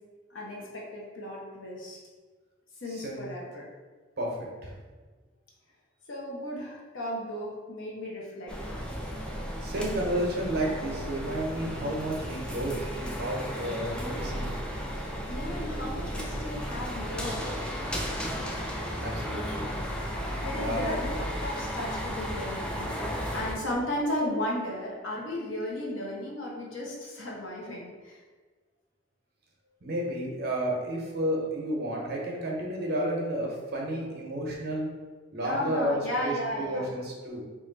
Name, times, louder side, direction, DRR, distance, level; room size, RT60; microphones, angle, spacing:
voice 1, 0.3-2.0 2.8-3.6 6.1-8.7 15.3-17.6 20.4-28.2 35.4-36.9, left 1 dB, 85° left, -3 dB, 0.9 m, -35 dB
voice 2, 2.9-3.2 4.2-4.7 9.6-14.5 19.0-19.7 20.6-20.9 29.8-34.9 35.3-37.4, right 1 dB, 55° right, -2 dB, 0.8 m, -31 dB
sound 1, 8.5-23.5, equal, 5° left, 0.4 m, -34 dB
2.9 x 2.5 x 3.9 m, 1.4 s
head